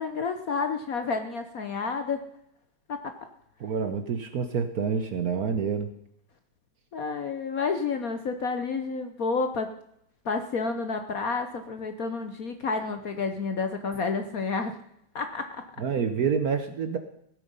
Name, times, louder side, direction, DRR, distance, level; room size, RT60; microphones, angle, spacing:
voice 1, 0.0-2.2 2.9-3.1 6.9-9.7 10.2-14.8 15.1-15.7, left 4 dB, 55° left, 7 dB, 1.1 m, -30 dB
voice 2, 3.6-5.9 15.8-17.0, right 6 dB, 55° right, 8 dB, 1.1 m, -27 dB
16.0 x 8.7 x 5.4 m, 0.75 s
omnidirectional pair, 2.3 m